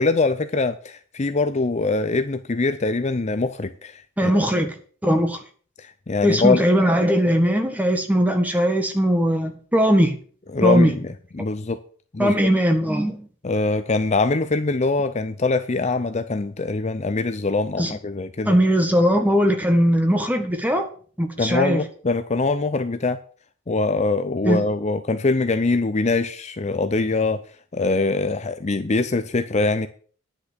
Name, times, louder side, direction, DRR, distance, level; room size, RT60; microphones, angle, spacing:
voice 1, 0.0-4.3 5.8-6.6 10.5-11.0 11.3-11.8 12.1-12.3 13.4-18.6 21.4-23.2 23.7-27.4 27.7-29.9, left 3 dB, 35° left, 0.6 m, -23 dB
voice 2, 4.2-5.4 6.2-10.2 10.6-10.9 12.2-13.3 17.8-18.0 18.5-20.9 21.2-21.8 24.4-24.6, equal, 10° right, 1.6 m, -19 dB
10.5 x 6.1 x 8.0 m
head